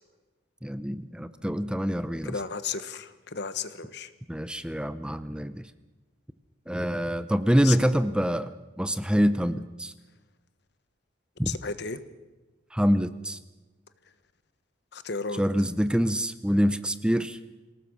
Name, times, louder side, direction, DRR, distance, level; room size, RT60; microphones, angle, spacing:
voice 1, 0.6-2.3 4.3-5.6 6.7-8.5 8.8-9.9 11.4-11.5 12.7-13.4 15.4-17.4, equal, 5° right, 13 dB, 0.7 m, -25 dB
voice 2, 2.2-4.1 7.6-7.8 11.4-12.0 14.9-15.4, left 5 dB, 60° left, 13 dB, 1.3 m, -33 dB
26.5 x 18.0 x 6.4 m, 1.2 s
head